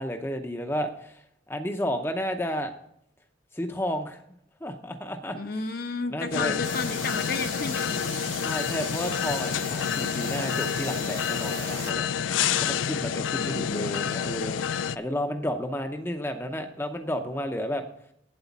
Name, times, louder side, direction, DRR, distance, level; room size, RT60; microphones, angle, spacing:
voice 1, 0.0-2.7 3.5-4.2 4.6-5.5 6.1-6.6 8.4-12.1 12.6-17.8, equal, 10° left, 5 dB, 0.6 m, -32 dB
voice 2, 5.3-8.3 13.4-13.9, left 3 dB, 50° left, 7 dB, 0.9 m, -33 dB
sound 1, 6.3-15.0, left 8 dB, 90° left, 0.4 m, -28 dB
sound 2, 6.6-11.9, right 7 dB, 60° right, 1.0 m, -40 dB
9.0 x 7.9 x 7.2 m, 0.73 s
head